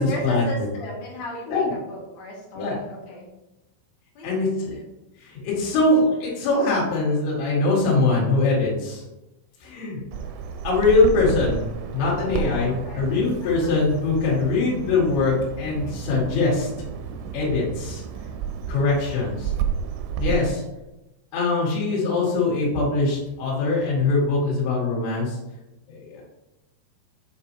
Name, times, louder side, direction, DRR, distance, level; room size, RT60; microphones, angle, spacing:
voice 1, 0.0-3.3 4.1-4.8 12.3-13.1 13.4-13.7 19.3-19.5, left 1 dB, 55° left, -4 dB, 2.1 m, -36 dB
voice 2, 4.2-4.7 5.2-9.0 9.6-10.0 10.6-11.7 11.9-16.7 17.3-18.0 18.7-19.5 20.2-20.6 21.3-25.4 25.9-26.2, left 3 dB, 70° left, -5 dB, 4.0 m, -22 dB
Bird vocalization bird call bird song, 10.1-20.4, right 7 dB, 80° right, 2.6 m, -32 dB
9.2 x 4.2 x 2.9 m, 0.97 s
omnidirectional pair, 5.5 m